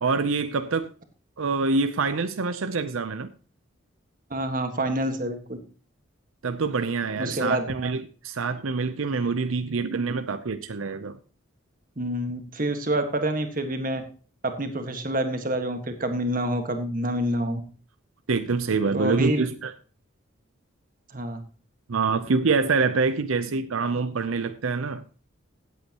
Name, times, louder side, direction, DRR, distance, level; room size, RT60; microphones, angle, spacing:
voice 1, 0.0-0.9 1.4-3.3 6.4-11.2 18.3-19.7 21.9-25.2, right 4 dB, 85° right, 0.6 m, -26 dB
voice 2, 4.3-5.6 7.2-7.7 12.0-14.0 14.4-17.6 18.9-19.4 21.1-21.4, right 1 dB, 40° right, 1.6 m, -27 dB
16.5 x 8.4 x 3.0 m
head